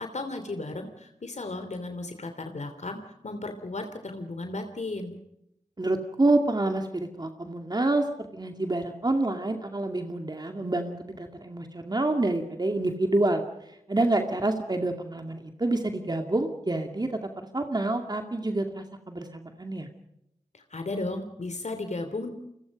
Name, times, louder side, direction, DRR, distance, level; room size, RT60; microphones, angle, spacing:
voice 1, 0.0-5.2 20.5-22.3, left 2 dB, 60° left, 7 dB, 2.9 m, -35 dB
voice 2, 5.8-8.1 8.3-19.9, right 2 dB, 30° right, 5 dB, 2.3 m, -28 dB
29.0 x 23.0 x 5.3 m, 0.83 s
wide cardioid pair, 65°, 13 cm